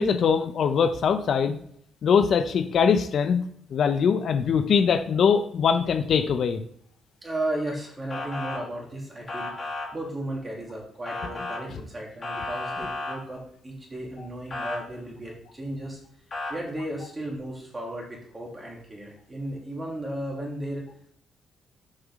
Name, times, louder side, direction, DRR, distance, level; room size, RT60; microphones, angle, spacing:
voice 1, 0.0-1.6 2.0-3.4 3.7-6.6, left 6 dB, 60° left, 8 dB, 0.6 m, -22 dB
voice 2, 7.2-16.0 16.5-20.8, right 1 dB, 20° right, -2 dB, 2.7 m, -35 dB
Motor vehicle (road) / Siren, 8.1-8.6 9.3-9.9 11.1-11.6 12.2-13.2 14.5-14.8 16.3-16.5, left 2 dB, 40° left, 2.6 m, -33 dB
6.5 x 5.6 x 3.6 m, 0.66 s
cardioid pair, 90°, 0 cm